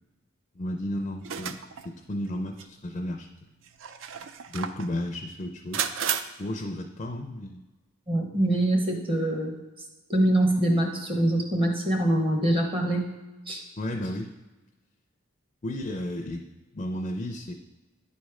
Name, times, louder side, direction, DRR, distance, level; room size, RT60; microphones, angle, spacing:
voice 1, 0.6-1.6 1.8-3.3 4.5-5.9 6.4-7.6 13.8-14.3 15.6-16.5 16.7-17.5, left 1 dB, 30° left, 4 dB, 0.4 m, -33 dB
sound 1, 1.2-1.9 2.6-2.7 3.7-4.9 5.7-6.2, right 8 dB, 65° right, 0.4 m, -32 dB
voice 2, 8.1-9.5 10.1-13.1 13.5-13.6, right 1 dB, 25° right, 3 dB, 0.9 m, -24 dB
9.4 x 3.2 x 4.8 m, 1.2 s
head